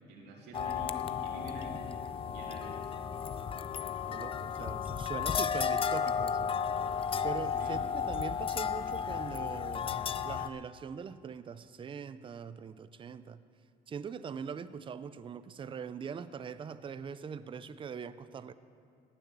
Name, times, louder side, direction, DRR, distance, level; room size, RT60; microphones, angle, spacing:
voice 1, 0.1-1.9 2.3-2.9 7.5-7.8, right 1 dB, 90° right, 0 dB, 2.6 m, -47 dB
sound 1, 0.5-10.5, left 7 dB, 30° left, 0.5 m, -33 dB
voice 2, 4.1-6.5 7.2-10.0 10.2-13.4 13.9-18.5, right 6 dB, 30° right, 14 dB, 0.5 m, -42 dB
18.5 x 7.1 x 7.4 m, 2.3 s
cardioid pair, 110°, 17 cm